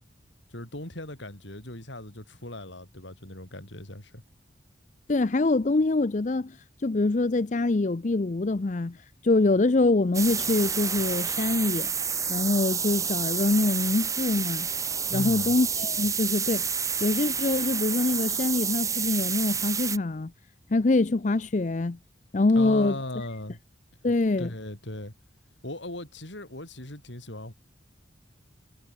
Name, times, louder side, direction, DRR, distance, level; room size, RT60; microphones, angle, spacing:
voice 1, 0.5-4.2 15.1-15.5 22.5-23.6 24.4-25.1 25.6-27.5, left 1 dB, 70° left, 4.7 m, -38 dB
voice 2, 5.1-11.9 12.3-14.7 15.1-16.7 17.0-20.3 20.7-22.0 22.3-23.0 24.0-24.5, left 2 dB, 40° left, 0.5 m, -24 dB
sound 1, 10.1-20.0, right 6 dB, 15° right, 2.6 m, -29 dB
head